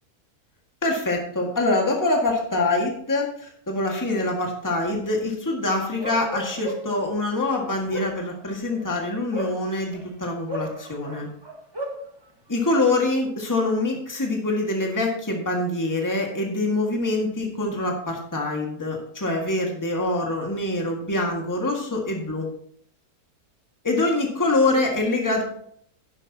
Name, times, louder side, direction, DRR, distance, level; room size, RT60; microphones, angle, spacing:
voice 1, 0.8-11.3 12.5-22.5 23.8-25.4, left 2 dB, 10° left, 0 dB, 1.8 m, -25 dB
Bark, 6.0-7.0 7.7-10.0 10.5-12.0, equal, 15° right, 1.7 m, -34 dB
11.5 x 10.5 x 2.9 m, 0.65 s
omnidirectional pair, 1.7 m